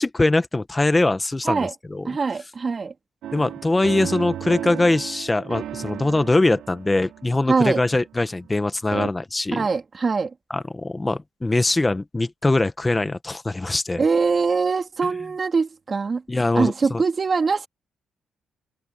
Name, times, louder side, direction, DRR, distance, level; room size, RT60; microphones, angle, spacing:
voice 1, 0.0-2.1 3.3-9.7 10.5-14.0 16.3-17.0, left 2 dB, 15° left, 1.2 m, -22 dB
voice 2, 2.0-2.9 7.5-7.8 9.5-10.3 14.0-16.2 16.5-17.7, right 4 dB, 35° right, 2.2 m, -22 dB
sound 1, 3.2-8.6 8.9-9.1, right 11 dB, 80° right, 5.2 m, -34 dB
cardioid pair, 90°, 0 cm